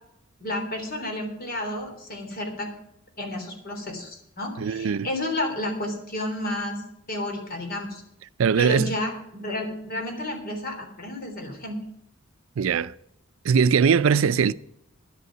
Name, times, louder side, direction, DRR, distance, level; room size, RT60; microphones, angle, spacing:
voice 1, 0.4-2.7 3.2-8.0 8.6-11.8, left 1 dB, 45° left, 3.4 m, -31 dB
voice 2, 4.6-5.1 8.4-8.9 12.6-12.9 13.4-14.5, right 6 dB, 70° right, 0.4 m, -20 dB
11.5 x 8.3 x 7.3 m
head